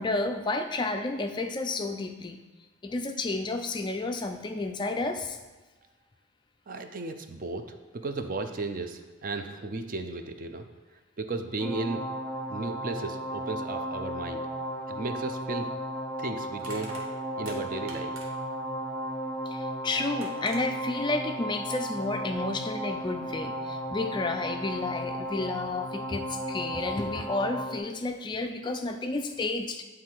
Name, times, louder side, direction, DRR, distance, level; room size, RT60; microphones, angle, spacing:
voice 1, 0.0-2.4 2.8-5.4 19.5-29.8, left 2 dB, 20° left, 6 dB, 0.3 m, -31 dB
voice 2, 6.7-10.7 11.2-12.0 12.5-14.4 14.9-15.7 16.2-16.9 17.4-18.1, right 3 dB, 40° right, 7 dB, 0.5 m, -34 dB
sound 1, 11.6-27.8, equal, ahead, 0.8 m, -35 dB
Crushing, 16.6-18.5 19.7-19.8 20.2-20.6, right 2 dB, 80° right, 1.3 m, -45 dB
9.3 x 3.7 x 4.5 m, 1.2 s
head